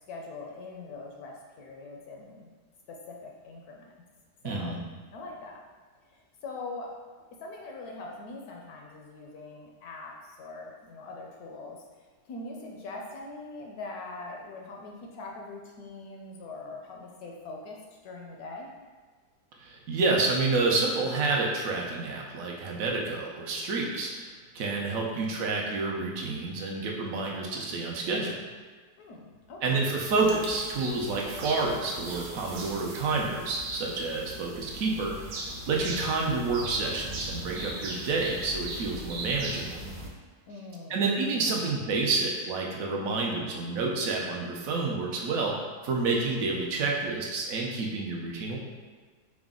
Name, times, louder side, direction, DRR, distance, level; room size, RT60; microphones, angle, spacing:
voice 1, 0.1-2.5 2.9-4.0 4.4-4.8 5.1-5.6 6.1-6.9 7.4-11.8 12.3-17.8 18.0-18.7 25.1-25.5 29.0-29.8 40.5-41.7, left 3 dB, 70° left, 0 dB, 1.0 m, -42 dB
voice 2, 4.4-4.8 19.6-24.3 24.5-28.3 29.6-39.7 40.9-45.6 45.8-48.6, right 3 dB, 70° right, -1 dB, 0.9 m, -29 dB
sound 1, 30.0-40.1, right 1 dB, 85° right, 1.3 m, -39 dB
4.8 x 2.1 x 3.6 m, 1.5 s
omnidirectional pair, 1.8 m